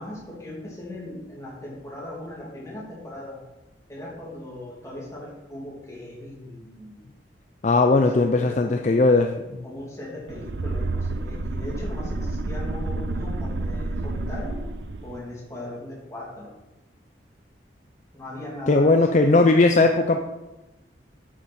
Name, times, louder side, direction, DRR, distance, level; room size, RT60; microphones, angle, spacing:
voice 1, 0.0-3.4 3.9-7.0 7.7-9.0 9.6-14.6 15.0-16.6 18.1-19.7, left 1 dB, 15° left, -5 dB, 2.9 m, -39 dB
voice 2, 7.6-9.6 18.7-20.2, left 3 dB, 40° left, 5 dB, 0.5 m, -18 dB
sound 1, 10.3-15.2, right 2 dB, 80° right, 0.6 m, -29 dB
8.8 x 7.6 x 4.3 m, 1.0 s
head